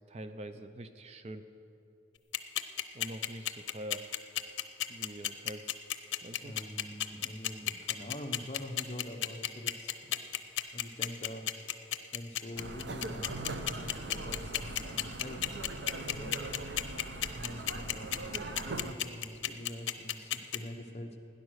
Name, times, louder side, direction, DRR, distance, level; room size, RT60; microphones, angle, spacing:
voice 1, 0.1-1.4 2.9-4.0 4.9-5.8 6.2-6.5, right 1 dB, 35° right, 10 dB, 0.5 m, -44 dB
sound 1, 2.3-20.6, left 12 dB, 85° left, 0.7 m, -32 dB
voice 2, 6.4-9.9 10.7-11.5 12.1-15.4 16.0-16.4 17.3-21.2, left 1 dB, 35° left, 4 dB, 1.0 m, -44 dB
sound 2, 12.6-18.9, right 2 dB, 65° right, 0.8 m, -41 dB
17.5 x 10.0 x 6.4 m, 2.8 s
head